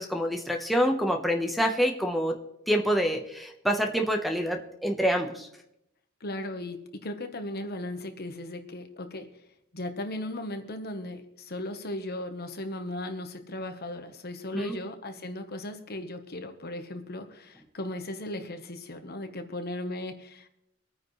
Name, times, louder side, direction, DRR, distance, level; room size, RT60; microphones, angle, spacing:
voice 1, 0.0-2.3 2.7-5.5 14.5-14.8, equal, ahead, 1 dB, 1.2 m, -26 dB
voice 2, 6.2-9.3 9.7-20.5, left 1 dB, 50° left, 7 dB, 1.3 m, -37 dB
25.5 x 9.5 x 3.3 m, 0.81 s
head